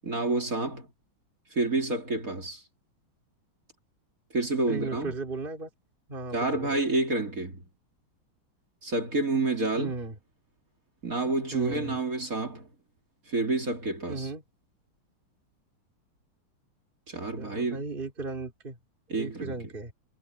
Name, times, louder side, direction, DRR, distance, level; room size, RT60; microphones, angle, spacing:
voice 1, 0.0-0.9 1.5-2.6 4.3-5.1 6.3-7.7 8.8-9.9 11.0-12.7 13.2-14.3 17.1-17.8 19.1-19.6, right 3 dB, 40° right, 3.5 m, -29 dB
voice 2, 4.7-5.7 6.1-6.8 9.8-10.1 11.5-12.0 14.1-14.4 17.4-18.8 19.2-19.9, right 3 dB, 25° right, 2.9 m, -35 dB
omnidirectional pair, 2.3 m